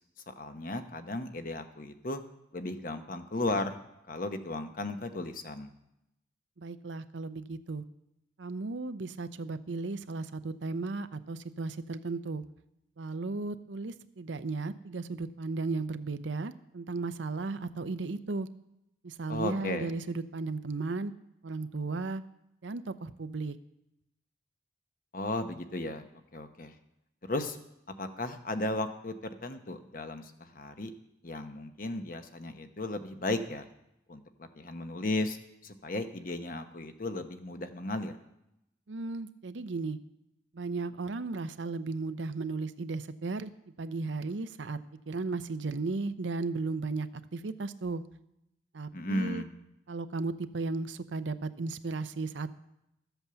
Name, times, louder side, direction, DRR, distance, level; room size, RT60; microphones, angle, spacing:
voice 1, 0.3-2.2 2.5-3.8 4.1-5.7 19.3-19.9 25.1-26.0 26.3-26.8 27.3-27.6 28.0-29.1 29.4-30.9 31.2-33.7 34.1-35.4 35.6-38.1 48.9-49.5, left 2 dB, 50° left, 8 dB, 0.9 m, -35 dB
voice 2, 6.6-7.8 8.4-12.4 13.0-18.5 19.0-21.1 21.4-22.2 22.6-23.6 38.9-40.0 40.5-43.5 43.8-44.8 45.1-48.0 48.7-49.4 49.9-52.5, right 3 dB, 85° right, 11 dB, 0.7 m, -35 dB
13.0 x 8.0 x 6.9 m, 0.85 s
head